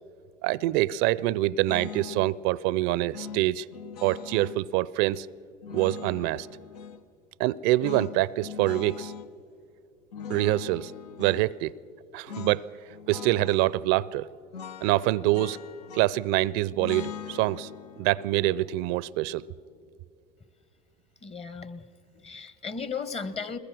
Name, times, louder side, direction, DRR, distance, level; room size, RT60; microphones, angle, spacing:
voice 1, 0.4-3.7 4.0-5.3 5.7-6.5 7.4-9.1 10.3-10.9 11.2-11.7 12.1-12.6 13.1-14.3 14.8-15.6 15.9-17.7 18.0-19.4, right 16 dB, 70° right, 0.4 m, -25 dB
sound 1, 1.7-2.3 3.1-4.6 5.6-7.0 7.8-9.3 10.1-11.5 12.3-12.6 12.9-13.7 14.5-16.3 16.8-19.9, left 7 dB, 90° left, 0.6 m, -41 dB
voice 2, 21.2-21.8 22.2-23.6, left 5 dB, 30° left, 1.2 m, -35 dB
21.5 x 20.5 x 6.1 m
hypercardioid pair, 80°, 20 cm